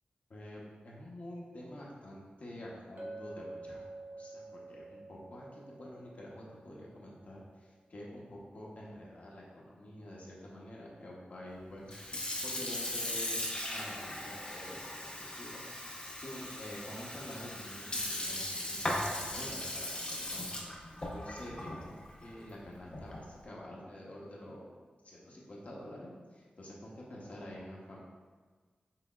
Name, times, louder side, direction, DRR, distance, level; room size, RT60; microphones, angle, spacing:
voice 1, 0.3-3.8 4.1-11.8 12.4-13.4 13.7-15.6 16.2-20.5 21.1-21.9 22.2-24.7 25.0-28.0, left 1 dB, 55° left, -4 dB, 1.0 m, -48 dB
Chink clink, 3.0-7.1, right 2 dB, 70° right, 0.9 m, -48 dB
Sink (filling or washing) / Fill (with liquid), 11.8-23.3, left 1 dB, 35° left, 0.7 m, -38 dB
5.8 x 3.3 x 2.4 m, 1.4 s
wide cardioid pair, 105°, 3 cm